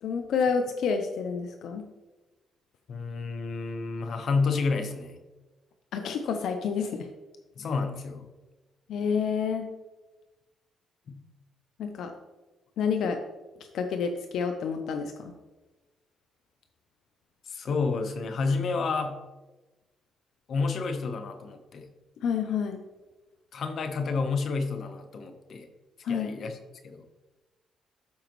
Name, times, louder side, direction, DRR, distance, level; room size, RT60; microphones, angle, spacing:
voice 1, 0.0-1.8 5.9-7.1 8.9-9.7 11.8-12.1 12.8-13.2 13.7-15.3 22.2-22.8 26.0-26.3, left 6 dB, 75° left, 6 dB, 0.6 m, -29 dB
voice 2, 2.9-5.2 7.6-8.3 11.1-11.2 17.5-19.2 20.5-21.9 23.5-25.7 26.1-26.6 26.8-27.0, left 4 dB, 60° left, 6 dB, 1.0 m, -30 dB
12.5 x 4.9 x 3.1 m, 1.2 s
cardioid pair, 90°, 0 cm